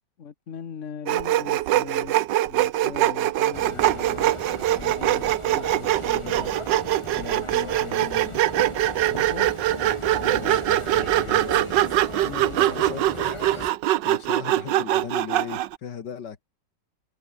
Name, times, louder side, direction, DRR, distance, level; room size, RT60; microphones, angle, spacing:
voice 1, 0.2-2.2 2.5-4.3 4.7-6.5 7.2-8.4 9.1-9.5 12.2-13.1, left 7 dB, 45° left, 1.5 m, -39 dB
Sawing, 1.1-15.8, right 14 dB, 80° right, 1.4 m, -23 dB
sound 1, 3.5-13.7, left 1 dB, 15° left, 3.5 m, -37 dB
voice 2, 10.1-11.8 12.7-13.7 14.0-16.4, left 7 dB, 70° left, 2.2 m, -38 dB
omnidirectional pair, 1.9 m